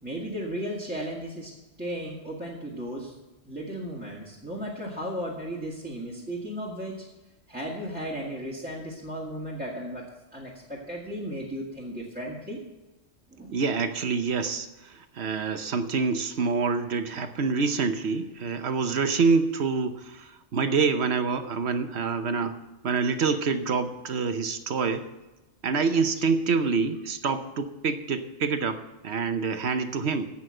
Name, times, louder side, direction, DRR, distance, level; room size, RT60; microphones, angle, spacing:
voice 1, 0.0-1.5 1.8-3.1 3.4-7.1 7.5-10.1 10.3-12.6 13.3-13.5, equal, 5° right, -5 dB, 2.0 m, -35 dB
voice 2, 13.5-22.6 22.8-25.0 25.6-30.3, right 5 dB, 60° right, 9 dB, 1.1 m, -26 dB
16.0 x 5.7 x 7.8 m, 1.0 s
omnidirectional pair, 1.3 m